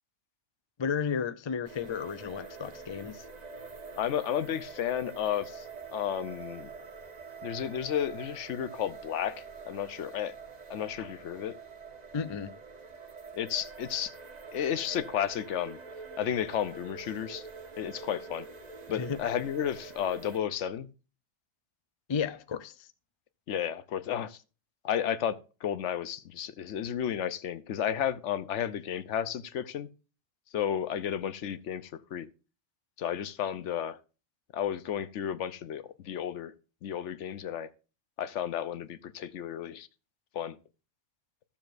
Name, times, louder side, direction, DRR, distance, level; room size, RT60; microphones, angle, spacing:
voice 1, 0.8-3.2 12.1-12.5 18.9-19.2 22.1-22.9, left 6 dB, 50° left, 0.3 m, -33 dB
sound 1, 1.6-20.4, right 4 dB, 35° right, 1.1 m, -45 dB
voice 2, 4.0-5.7 5.9-6.7 7.4-10.3 10.7-11.6 13.3-14.1 14.5-15.8 16.2-17.4 17.8-18.5 18.9-20.9 23.5-24.4 24.8-29.9 30.5-32.3 33.0-34.0 34.5-36.5 36.8-37.7 38.2-39.9 40.3-40.6, left 9 dB, 80° left, 1.0 m, -32 dB
14.0 x 7.2 x 2.5 m
omnidirectional pair, 1.2 m